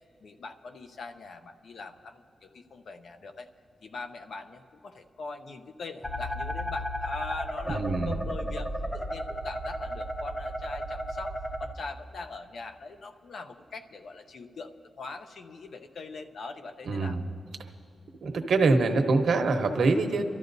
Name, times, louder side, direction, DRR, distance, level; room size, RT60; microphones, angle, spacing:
voice 1, 0.2-3.5 3.8-14.7 15.0-17.2, left 3 dB, 65° left, 7 dB, 0.7 m, -42 dB
sound 1, 6.0-11.7, equal, 10° left, 0.7 m, -34 dB
voice 2, 7.7-8.2 16.9-17.3 18.2-20.2, right 3 dB, 70° right, 5 dB, 1.0 m, -24 dB
28.0 x 13.0 x 2.7 m, 2.6 s
wide cardioid pair, 155°, 0 cm